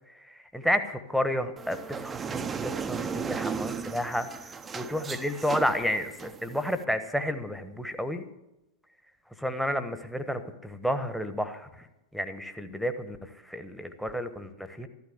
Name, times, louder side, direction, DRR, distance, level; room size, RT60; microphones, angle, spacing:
voice 1, 0.3-8.3 9.4-11.7 12.1-13.2 13.5-14.9, equal, ahead, 10 dB, 1.2 m, -31 dB
sound 1, 1.6-6.8, right 6 dB, 20° right, 0.7 m, -36 dB
14.0 x 12.0 x 6.7 m, 0.91 s
figure-of-eight pair, 90°, 0 cm